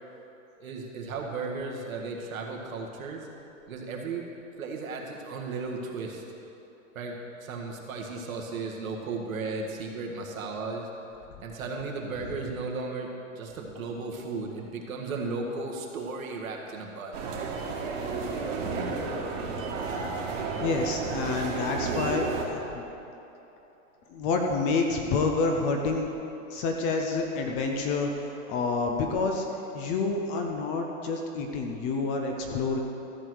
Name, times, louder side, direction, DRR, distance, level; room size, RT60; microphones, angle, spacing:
voice 1, 0.6-3.3 3.7-4.2 4.6-6.2 7.0-10.8 11.4-17.2, right 3 dB, 90° right, 0 dB, 1.8 m, -35 dB
sound 1, 17.1-22.5, right 4 dB, 70° right, 2.0 m, -32 dB
voice 2, 20.6-22.8 24.1-26.1 26.5-29.4 29.7-32.8, left 3 dB, 20° left, 2 dB, 0.4 m, -28 dB
13.5 x 4.6 x 7.9 m, 3.0 s
hypercardioid pair, 145°, 40 cm